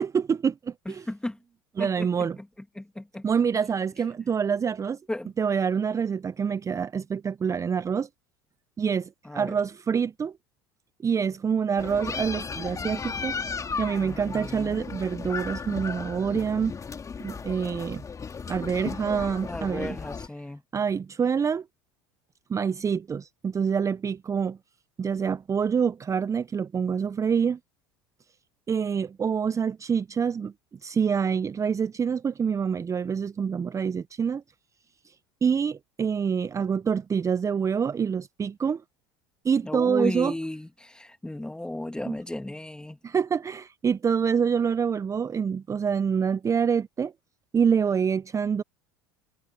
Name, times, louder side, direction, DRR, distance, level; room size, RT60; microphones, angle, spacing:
voice 1, 0.0-1.1 1.8-2.4 3.2-5.0 5.4-8.1 8.8-10.3 11.0-13.3 13.8-16.7 17.2-18.0 18.5-20.0 20.7-21.6 22.5-24.6 25.0-27.6 28.7-30.5 30.8-34.4 35.0-35.1 35.4-38.8 39.4-40.3 42.0-42.2 43.0-47.1 47.5-48.6, right 6 dB, 25° right, 0.7 m, -26 dB
voice 2, 2.8-3.2 5.1-5.3 9.2-9.6 14.0-14.8 19.5-20.6 39.6-43.0, left 1 dB, 5° left, 2.5 m, -35 dB
sound 1, 11.8-20.3, left 5 dB, 25° left, 3.3 m, -35 dB
hypercardioid pair, 75°, 13 cm